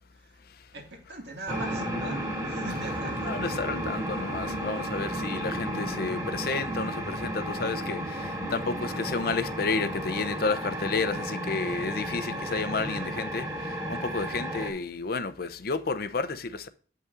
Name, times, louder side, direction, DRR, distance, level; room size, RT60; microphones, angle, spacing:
voice 1, 0.7-3.5 12.8-13.3, right 2 dB, 75° right, 2.1 m, -40 dB
sound 1, 1.5-14.7, right 1 dB, 20° right, 2.2 m, -33 dB
voice 2, 3.2-13.4 13.9-16.7, left 4 dB, 60° left, 0.7 m, -31 dB
8.0 x 5.6 x 3.8 m
head